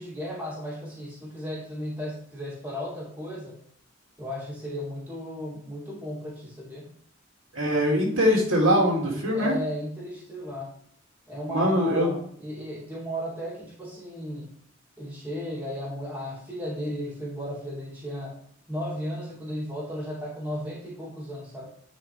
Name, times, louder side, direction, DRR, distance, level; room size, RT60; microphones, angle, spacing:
voice 1, 0.0-3.6 4.2-6.9 9.3-10.7 11.3-14.5 15.0-18.4 18.7-21.7, equal, 10° right, -7 dB, 2.7 m, -35 dB
voice 2, 7.5-9.5 11.5-12.1, equal, 85° right, -2 dB, 2.5 m, -22 dB
9.7 x 5.1 x 3.4 m, 0.65 s
head